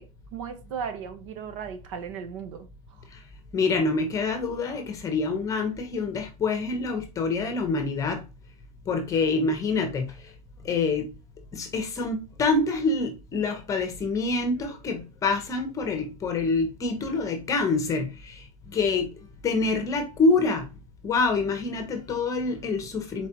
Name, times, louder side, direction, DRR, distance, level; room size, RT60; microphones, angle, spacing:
voice 1, 0.0-3.0, right 7 dB, 55° right, 0.9 m, -37 dB
voice 2, 3.5-8.2 8.9-10.1 10.6-11.1 11.5-18.3 18.7-19.1 19.4-20.7 21.0-23.3, left 3 dB, 15° left, 0.9 m, -26 dB
4.5 x 4.1 x 2.9 m
supercardioid pair, 160°, 19 cm